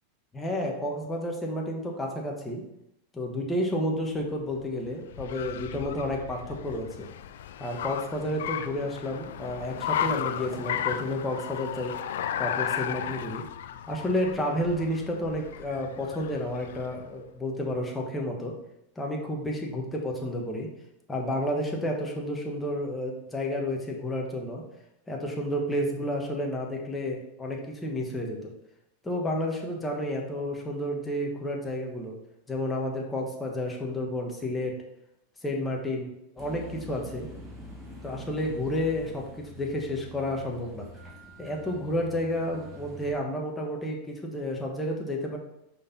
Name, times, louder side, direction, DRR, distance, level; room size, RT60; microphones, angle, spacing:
voice 1, 0.3-2.6 3.1-7.1 7.6-11.9 12.4-13.4 13.9-18.5 19.0-20.7 21.1-24.6 25.1-28.5 29.0-32.2 32.5-34.7 35.4-36.1 36.4-37.3 38.0-40.9 41.4-45.4, left 1 dB, 10° left, 0 dB, 1.2 m, -31 dB
Car, 4.1-17.1, left 9 dB, 80° left, 0.3 m, -35 dB
sound 1, 36.4-43.1, equal, 15° right, 1.6 m, -45 dB
5.3 x 4.4 x 4.1 m, 0.83 s
hypercardioid pair, 120°, 0 cm